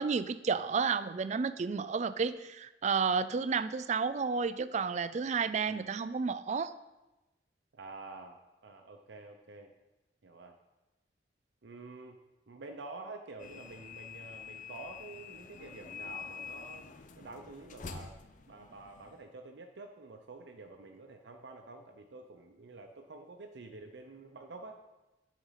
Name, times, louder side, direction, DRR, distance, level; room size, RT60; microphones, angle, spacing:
voice 1, 0.0-6.7, right 5 dB, 40° right, 14 dB, 0.4 m, -31 dB
voice 2, 7.7-9.7 10.2-10.6 11.6-12.2 12.5-16.8 17.2-18.2 18.5-24.8, right 3 dB, 70° right, 4 dB, 0.7 m, -48 dB
sound 1, 13.4-19.2, left 6 dB, 45° left, 0.6 m, -47 dB
10.0 x 5.1 x 5.7 m, 1.0 s
head